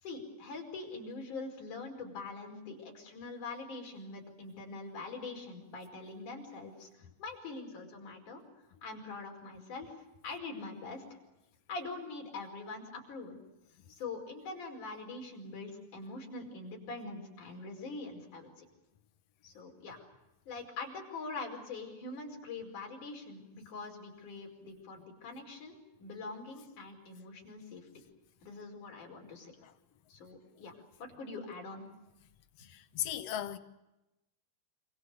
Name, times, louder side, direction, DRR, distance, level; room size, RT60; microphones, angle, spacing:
voice 1, 0.0-6.9 7.2-8.4 8.8-9.9 10.2-11.0 11.7-13.4 13.9-18.6 19.4-20.0 20.5-28.0 28.4-29.5 30.1-30.7 31.0-31.9, left 3 dB, 50° left, 6.4 m, -43 dB
voice 2, 32.6-33.6, left 11 dB, 70° left, 1.5 m, -37 dB
27.5 x 26.5 x 6.9 m
omnidirectional pair, 4.5 m